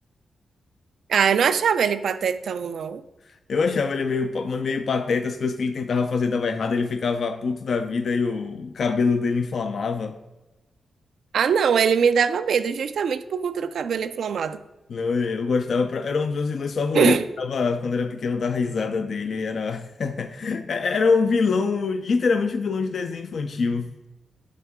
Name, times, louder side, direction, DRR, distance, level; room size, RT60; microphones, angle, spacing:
voice 1, 1.1-3.0 11.3-14.6 16.9-17.2, right 7 dB, 75° right, 12 dB, 0.3 m, -22 dB
voice 2, 3.5-10.2 14.9-23.9, left 4 dB, 65° left, 8 dB, 0.4 m, -24 dB
10.5 x 3.6 x 3.5 m, 1.1 s
cardioid pair, 70°, 0 cm